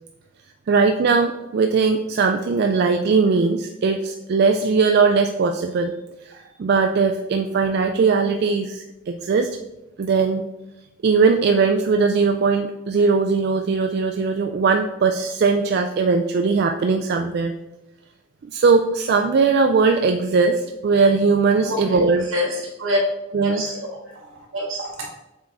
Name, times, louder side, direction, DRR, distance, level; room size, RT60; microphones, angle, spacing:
voice 1, 0.7-5.9 6.3-9.5 10.0-10.5 11.0-17.5 18.5-22.3 23.3-23.7, right 4 dB, 50° right, 5 dB, 0.3 m, -19 dB
voice 2, 21.6-23.0 23.4-25.1, left 1 dB, 80° right, -1 dB, 1.9 m, -27 dB
7.1 x 3.8 x 3.5 m, 0.97 s
head